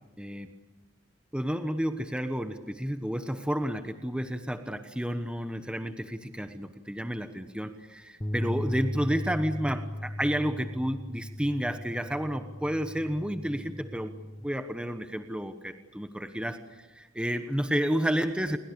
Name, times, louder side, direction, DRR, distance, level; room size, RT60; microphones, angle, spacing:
voice 1, 0.2-0.5 1.3-14.1 14.4-18.6, equal, 5° right, 8 dB, 1.1 m, -31 dB
sound 1, 8.2-14.5, left 1 dB, 15° left, 0.9 m, -37 dB
28.5 x 22.5 x 8.5 m, 1.2 s
head